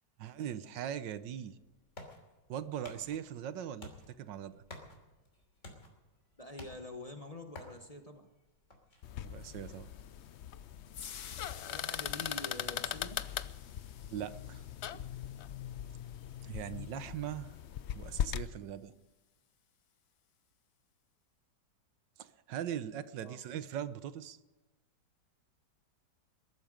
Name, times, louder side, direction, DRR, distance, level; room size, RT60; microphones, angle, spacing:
voice 1, 0.2-1.6 2.5-4.6 9.2-9.9 14.1-14.6 14.9-15.0 16.4-17.6 17.9-19.0 22.2-24.4, right 10 dB, 85° right, 13 dB, 1.5 m, -40 dB
sound 1, 1.2-12.7, left 2 dB, 40° left, 3.3 m, -56 dB
voice 2, 6.4-8.3 11.6-13.2 23.2-23.4, left 2 dB, 25° left, 5 dB, 1.0 m, -46 dB
sound 2, 9.0-18.5, left 10 dB, 85° left, 0.6 m, -40 dB
sound 3, 9.4-17.7, left 8 dB, 60° left, 1.5 m, -53 dB
21.5 x 12.5 x 5.1 m, 1.1 s
omnidirectional pair, 1.9 m